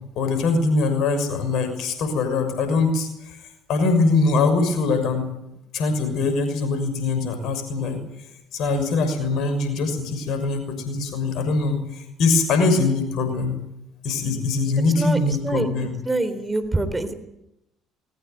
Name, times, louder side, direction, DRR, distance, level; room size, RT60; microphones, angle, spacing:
voice 1, 0.2-3.4 3.7-5.3 5.7-8.0 8.5-13.6 14.0-15.9, left 3 dB, 55° left, 8 dB, 6.3 m, -22 dB
voice 2, 16.1-17.1, right 2 dB, 15° right, 10 dB, 3.6 m, -24 dB
21.0 x 19.5 x 9.3 m, 0.87 s
figure-of-eight pair, 55°, 0 cm